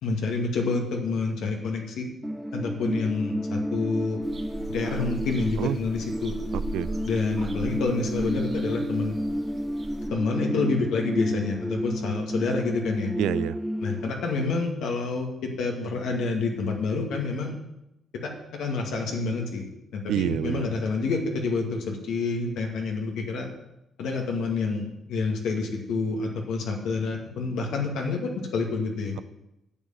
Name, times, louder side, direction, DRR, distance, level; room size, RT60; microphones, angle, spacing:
voice 1, 0.0-2.1 2.5-4.2 4.7-6.4 7.0-9.1 10.1-13.1 13.8-17.6 18.1-19.7 19.9-23.5 24.0-29.1, left 4 dB, 80° left, 0 dB, 2.0 m, -28 dB
sound 1, 2.2-14.1, equal, ahead, 0.6 m, -31 dB
sound 2, 4.2-10.1, right 1 dB, 35° right, 2.3 m, -38 dB
voice 2, 6.5-6.9 13.2-13.6 20.1-20.7, right 12 dB, 85° right, 15 dB, 0.4 m, -27 dB
9.7 x 7.8 x 7.3 m, 0.89 s
cardioid pair, 90°, 0 cm